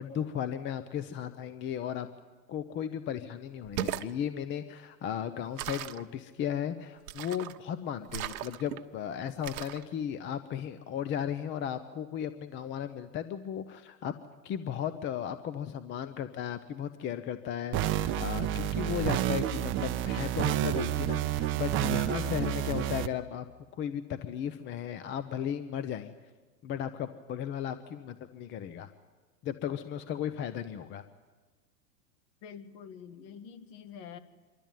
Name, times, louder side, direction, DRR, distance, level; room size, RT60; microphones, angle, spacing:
voice 1, 0.0-2.1 2.5-14.1 14.4-23.5 23.7-26.1 26.6-28.9 29.4-31.0, left 9 dB, 25° left, 11 dB, 0.7 m, -35 dB
sound 1, 3.6-4.1 5.6-6.0 7.1-7.6 8.1-8.8 9.4-9.8, right 12 dB, 55° right, 1.1 m, -37 dB
sound 2, 17.7-23.1, right 11 dB, 25° right, 0.7 m, -29 dB
voice 2, 32.4-34.2, left 7 dB, 50° left, 9 dB, 1.9 m, -47 dB
26.0 x 12.5 x 9.2 m, 1.3 s
hypercardioid pair, 120°, 49 cm